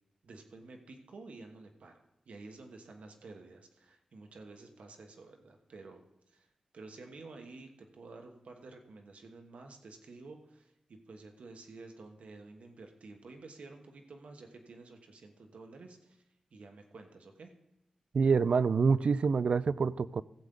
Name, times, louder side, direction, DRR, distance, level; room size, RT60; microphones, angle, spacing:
voice 1, 0.2-16.2 16.5-17.5, right 3 dB, 80° right, 1.3 m, -51 dB
voice 2, 18.1-20.2, right 5 dB, 60° right, 0.3 m, -26 dB
16.0 x 8.0 x 3.8 m
wide cardioid pair, 145°, 2 cm